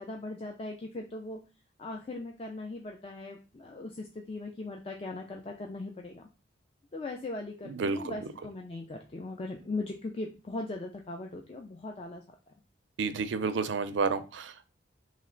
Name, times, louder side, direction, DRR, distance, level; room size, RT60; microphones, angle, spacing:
voice 1, 0.0-1.4 1.8-6.3 6.9-12.2, left 2 dB, 30° left, 0.4 m, -39 dB
voice 2, 7.7-8.1 13.0-14.7, right 4 dB, 85° right, 0.5 m, -30 dB
3.2 x 3.2 x 3.7 m
head